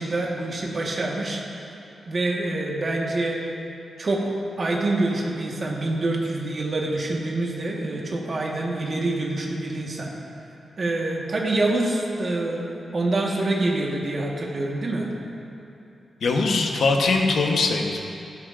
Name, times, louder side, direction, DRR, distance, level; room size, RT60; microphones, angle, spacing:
voice 1, 0.0-1.4 2.1-3.4 4.0-10.1 10.8-12.7 12.9-15.1, right 2 dB, 35° right, -2 dB, 1.4 m, -26 dB
voice 2, 16.2-18.0, left 3 dB, 70° left, 2 dB, 1.0 m, -21 dB
16.0 x 12.0 x 2.6 m, 2.8 s
wide cardioid pair, 180°, 0 cm